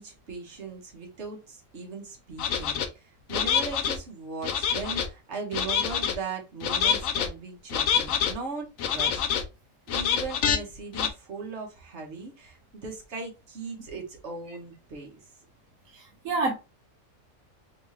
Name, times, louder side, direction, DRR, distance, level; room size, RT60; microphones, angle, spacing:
voice 1, 0.0-9.2 9.9-15.1, right 4 dB, 55° right, 1.5 m, -38 dB
sound 1, 2.4-2.9 3.3-4.0 4.4-5.1 5.5-6.1 6.6-7.3 7.7-8.3 8.8-9.4 9.9-10.6 10.9-11.1, left 8 dB, 75° left, 1.0 m, -26 dB
voice 2, 15.9-16.5, right 3 dB, 80° right, 1.3 m, -28 dB
3.7 x 3.5 x 2.9 m
omnidirectional pair, 1.4 m